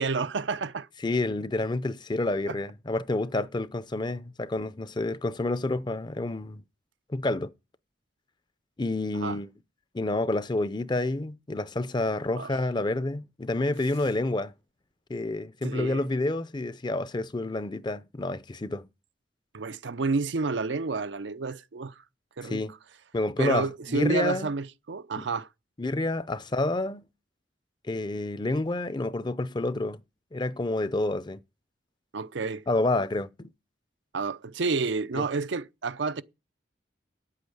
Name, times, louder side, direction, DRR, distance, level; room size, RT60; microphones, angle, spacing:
voice 1, 0.0-0.9 2.5-2.6 9.1-9.4 12.4-12.5 15.6-16.1 19.5-22.0 22.4-22.6 23.4-25.5 32.1-32.7 34.1-36.2, right 4 dB, 85° right, 0.6 m, -30 dB
voice 2, 1.0-6.6 7.1-7.5 8.8-9.5 9.9-14.5 15.1-18.9 22.4-22.7 23.1-24.5 25.8-27.1 27.9-30.0 30.3-31.4 32.7-33.5 35.1-35.3, left 2 dB, 25° left, 0.5 m, -29 dB
8.9 x 8.5 x 7.9 m
head